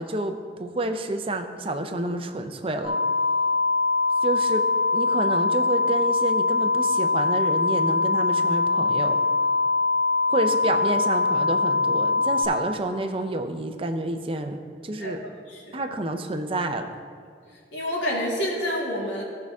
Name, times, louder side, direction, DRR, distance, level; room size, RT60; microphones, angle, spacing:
voice 1, 0.0-3.0 4.2-4.6 4.9-9.2 10.3-14.6 14.8-15.2 15.7-17.0, right 1 dB, 30° right, 7 dB, 0.6 m, -29 dB
sound 1, 2.8-12.4, left 3 dB, 40° left, 1.6 m, -22 dB
voice 2, 15.5-15.8 17.7-19.2, equal, 90° left, -3 dB, 2.3 m, -28 dB
17.0 x 5.7 x 3.6 m, 2.2 s
head